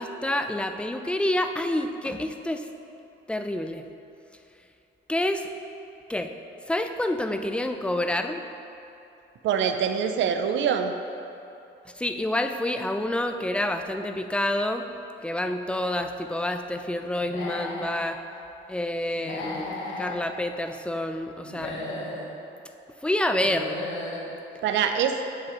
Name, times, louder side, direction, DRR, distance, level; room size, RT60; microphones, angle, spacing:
voice 1, 0.0-2.7 3.3-3.8 5.1-5.5 6.1-6.3 6.7-8.4 12.0-14.8 15.2-18.2 18.7-21.8 23.0-23.8, left 1 dB, 5° left, 7 dB, 0.4 m, -28 dB
voice 2, 9.4-10.9 24.6-25.2, right 7 dB, 70° right, 7 dB, 0.5 m, -24 dB
Human voice / Animal, 17.2-18.0 19.2-20.2 21.4-22.3 23.4-24.3, left 2 dB, 80° left, 1.5 m, -35 dB
8.4 x 6.3 x 3.0 m, 2.8 s
cardioid pair, 90°, 20 cm